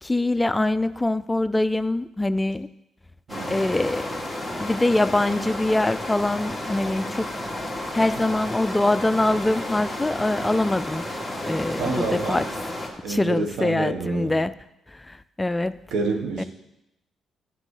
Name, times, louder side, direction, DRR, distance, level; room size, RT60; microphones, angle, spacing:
voice 1, 0.0-2.7 3.5-4.2 4.6-7.3 7.9-11.0 11.4-12.5 13.1-14.5 14.9-15.8 16.4-16.5, left 2 dB, 15° left, 14 dB, 0.3 m, -23 dB
sound 1, 3.3-12.9, left 1 dB, 5° right, 2.0 m, -32 dB
voice 2, 3.3-3.7 11.8-12.4 13.0-14.3 15.9-16.4, right 3 dB, 80° right, 4 dB, 1.4 m, -28 dB
9.9 x 6.0 x 4.9 m, 0.89 s
cardioid pair, 90°, 0 cm